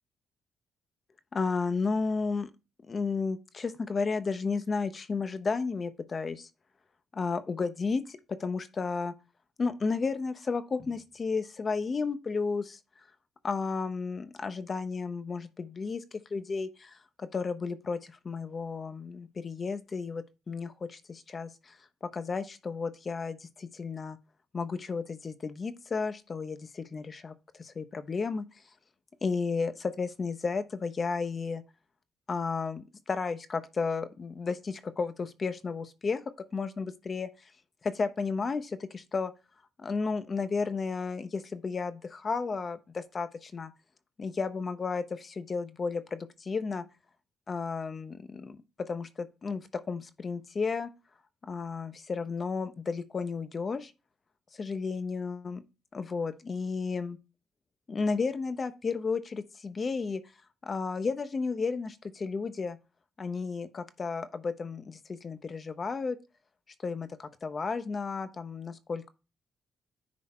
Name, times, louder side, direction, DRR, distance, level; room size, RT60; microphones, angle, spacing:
voice 1, 1.3-2.5 2.9-6.5 7.1-9.1 9.6-12.8 13.4-16.0 16.3-21.8 22.0-24.2 24.5-28.5 29.2-31.6 32.3-36.2 36.5-37.3 37.8-39.3 39.8-43.7 44.2-46.8 47.5-48.6 48.9-50.9 51.4-53.9 54.6-55.6 55.9-57.2 57.9-60.2 60.6-62.8 63.2-66.2 66.8-69.1, left 4 dB, 35° left, 1.0 m, -33 dB
10.5 x 4.0 x 4.4 m
cardioid pair, 90°, 0 cm